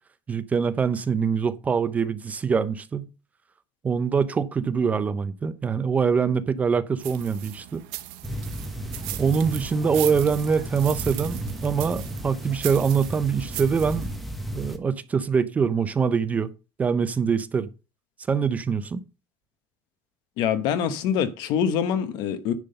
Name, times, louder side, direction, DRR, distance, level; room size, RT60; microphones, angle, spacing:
voice 1, 0.3-3.1 3.8-7.8 9.2-14.1 14.5-16.5 16.8-17.7 18.3-19.0, right 6 dB, 15° right, 0.4 m, -24 dB
sound 1, 7.0-14.2, right 15 dB, 85° right, 1.2 m, -38 dB
sound 2, 8.2-14.8, right 1 dB, ahead, 1.0 m, -34 dB
voice 2, 20.4-22.5, left 8 dB, 55° left, 1.1 m, -24 dB
10.5 x 3.8 x 6.7 m
cardioid pair, 170°, 8 cm